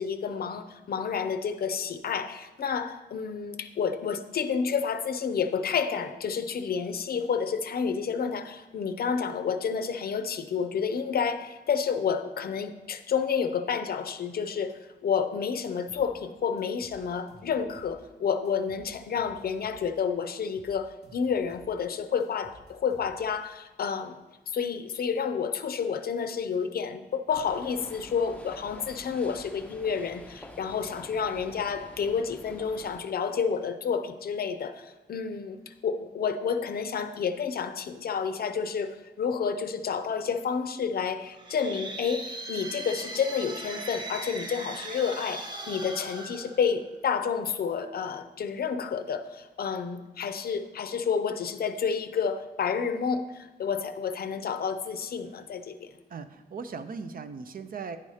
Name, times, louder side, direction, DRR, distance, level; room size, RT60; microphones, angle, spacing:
voice 1, 0.0-55.9, left 6 dB, 65° left, 10 dB, 0.5 m, -30 dB
sound 1, 15.9-16.1 16.6-18.0 18.4-19.9 20.3-21.8 22.2-23.4, equal, 70° right, 1.5 m, -55 dB
sound 2, 27.3-33.0, left 1 dB, 5° left, 0.5 m, -48 dB
sound 3, 41.3-47.2, right 2 dB, 25° right, 0.8 m, -39 dB
voice 2, 56.1-58.0, right 5 dB, 55° right, 10 dB, 0.5 m, -38 dB
9.9 x 4.1 x 4.9 m, 1.1 s
wide cardioid pair, 165°, 17 cm